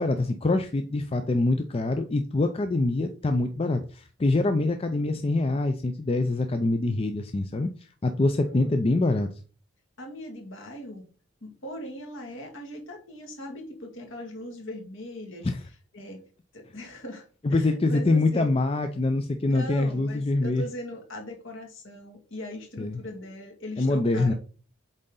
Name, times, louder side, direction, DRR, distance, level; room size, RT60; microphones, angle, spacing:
voice 1, 0.0-7.7 8.0-9.3 15.4-15.6 17.4-20.6 22.8-23.0 23.8-24.3, left 2 dB, 25° left, 7 dB, 0.4 m, -25 dB
voice 2, 10.0-11.1 11.4-15.5 15.9-16.2 16.5-17.2 17.5-18.5 19.5-24.3, left 1 dB, 65° left, 1 dB, 1.9 m, -39 dB
8.0 x 3.8 x 3.8 m, 0.38 s
head